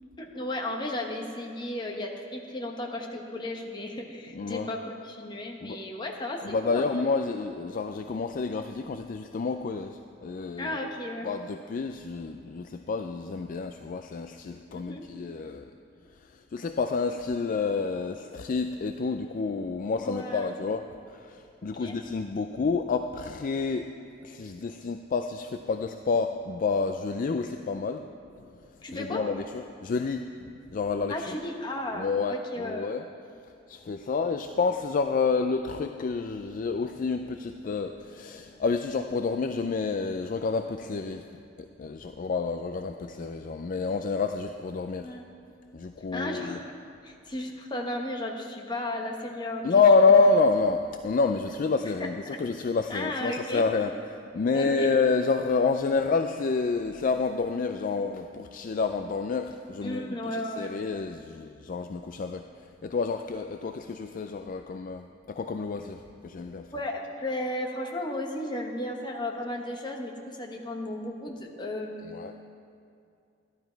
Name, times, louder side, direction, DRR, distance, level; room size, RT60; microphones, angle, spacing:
voice 1, 0.2-7.0 10.6-11.3 14.7-15.1 20.0-20.5 21.7-22.0 28.8-29.2 31.1-32.9 45.0-45.2 46.1-46.7 47.0-50.1 52.0-52.4 52.9-53.6 54.5-54.9 59.8-60.8 66.7-72.2, left 1 dB, 25° left, 1 dB, 1.2 m, -34 dB
voice 2, 4.3-4.7 5.6-5.8 6.4-10.8 11.2-15.7 16.5-20.8 21.1-23.9 24.2-28.0 28.9-30.3 30.7-31.1 32.0-33.0 33.7-41.2 41.6-45.1 45.7-46.6 49.6-62.4 62.8-66.7 72.1-72.3, left 4 dB, 45° left, 7 dB, 0.4 m, -28 dB
12.0 x 11.5 x 4.5 m, 2.4 s
head